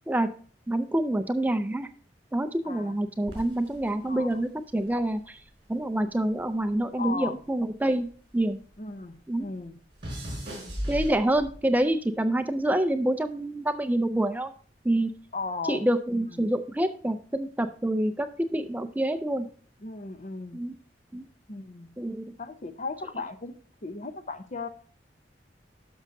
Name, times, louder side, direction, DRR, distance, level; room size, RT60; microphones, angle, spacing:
voice 1, 0.7-1.9 2.3-5.4 5.7-8.1 8.3-8.6 9.3-9.5 10.9-14.5 14.8-15.1 15.7-19.5 20.5-20.7 21.1-21.2 22.0-22.2, right 1 dB, 10° right, 0.4 m, -27 dB
voice 2, 2.6-3.0 4.0-4.4 7.0-7.4 8.8-9.8 15.3-15.8 16.1-16.5 19.8-20.6 21.5-21.9 22.4-23.5 23.8-24.7, left 3 dB, 45° left, 0.8 m, -36 dB
sound 1, 3.3-5.8 6.0-8.7 9.0-11.8 12.5-12.9, equal, 30° right, 4.7 m, -39 dB
11.5 x 6.3 x 2.6 m
head